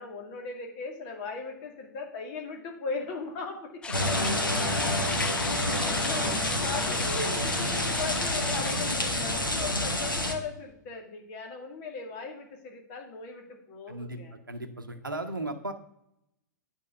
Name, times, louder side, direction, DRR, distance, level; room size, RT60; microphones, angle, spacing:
voice 1, 0.0-4.3 5.1-14.3, left 4 dB, 40° left, 2 dB, 2.2 m, -38 dB
sound 1, 3.8-9.2, left 5 dB, 10° left, 0.3 m, -36 dB
sound 2, 3.9-10.3, left 1 dB, 85° left, 1.4 m, -28 dB
voice 2, 13.9-14.2 14.5-15.7, right 2 dB, 85° right, 8 dB, 1.0 m, -35 dB
8.7 x 4.5 x 6.9 m, 0.77 s
figure-of-eight pair, 105°, 11 cm